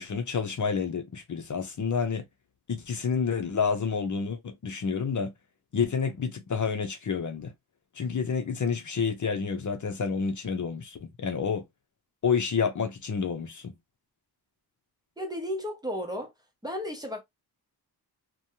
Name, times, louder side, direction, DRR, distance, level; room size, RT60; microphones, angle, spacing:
voice 1, 0.0-2.2 2.7-5.3 5.7-7.5 8.0-11.6 12.2-13.7, left 6 dB, 50° left, 0.7 m, -29 dB
voice 2, 15.2-16.3 16.6-17.2, equal, 10° right, 0.7 m, -33 dB
3.1 x 2.2 x 2.7 m
wide cardioid pair, 145°, 40 cm